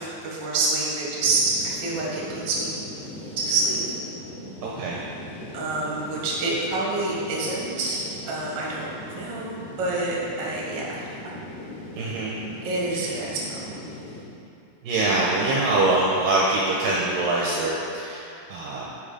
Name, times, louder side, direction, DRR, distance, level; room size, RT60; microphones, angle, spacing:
voice 1, 0.0-2.8 3.4-3.8 5.5-11.1 12.6-13.8, right 2 dB, 50° right, -5 dB, 1.4 m, -27 dB
sound 1, 1.2-14.2, left 1 dB, 80° left, 4.0 m, -40 dB
voice 2, 4.6-5.0 12.0-12.4 12.9-13.1 14.8-18.8, right 2 dB, 75° right, -5 dB, 2.1 m, -24 dB
9.6 x 5.1 x 5.0 m, 2.8 s
omnidirectional pair, 4.8 m